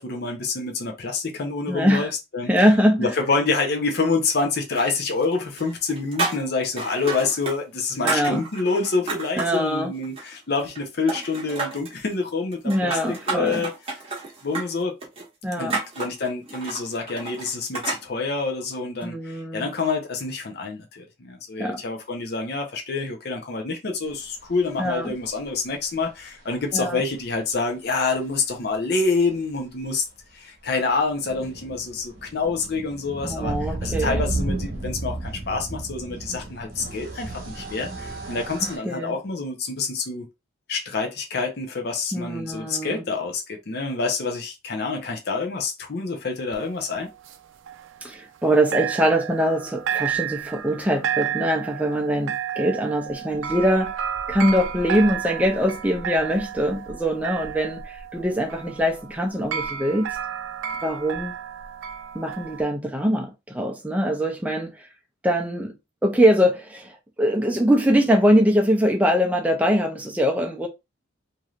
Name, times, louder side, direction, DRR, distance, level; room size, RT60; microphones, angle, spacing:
voice 1, 0.0-2.5 3.0-13.7 14.4-15.0 15.6-30.0 30.3-33.5 33.8-40.3 40.7-47.1, left 4 dB, 50° left, 0.6 m, -27 dB
voice 2, 1.7-2.1 2.5-3.1 8.0-8.4 9.4-9.9 12.6-13.7 15.4-15.8 19.0-19.7 21.6-21.8 24.8-25.1 26.7-27.0 33.2-34.2 38.6-39.2 42.1-43.0 48.0-53.9 54.3-60.2 60.8-61.3 62.1-64.9 65.2-65.7 66.0-70.7, equal, 5° right, 0.5 m, -22 dB
sound 1, 4.8-5.3 5.6-7.6 7.8-9.6 10.0-10.8 11.1-12.0 12.5-18.0, right 3 dB, 30° right, 0.9 m, -31 dB
sound 2, 26.0-26.1 27.4-27.5 27.7-27.8 28.0-28.2 30.7-38.8, right 2 dB, 50° right, 1.2 m, -32 dB
sound 3, 46.5-48.5 48.7-62.6, right 9 dB, 70° right, 0.4 m, -32 dB
3.1 x 2.6 x 2.4 m
head